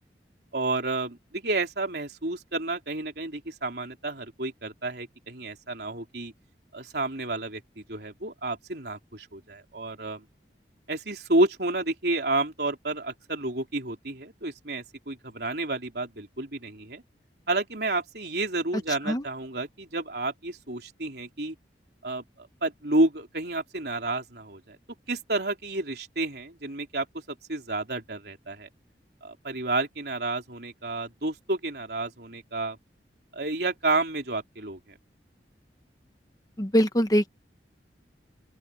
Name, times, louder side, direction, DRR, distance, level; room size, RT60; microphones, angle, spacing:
voice 1, 0.5-6.3 6.7-10.2 10.9-17.0 17.5-21.5 22.0-24.8 25.1-28.7 29.2-32.8 33.3-34.8, right 2 dB, 65° right, 3.9 m, -30 dB
voice 2, 36.6-37.3, equal, 20° left, 1.0 m, -22 dB
open air
head